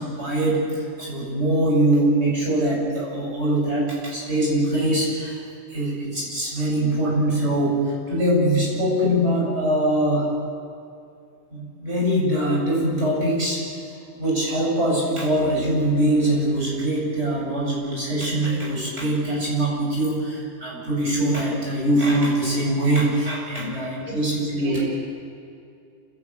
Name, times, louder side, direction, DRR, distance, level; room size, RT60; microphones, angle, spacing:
voice 1, 0.0-5.4 5.7-10.3 11.5-13.9 14.2-24.9, right 1 dB, 55° right, -4 dB, 8.1 m, -23 dB
voice 2, 23.6-24.2 24.6-24.9, right 1 dB, 25° right, -4 dB, 2.9 m, -34 dB
27.5 x 17.5 x 8.3 m, 2.5 s
omnidirectional pair, 1.4 m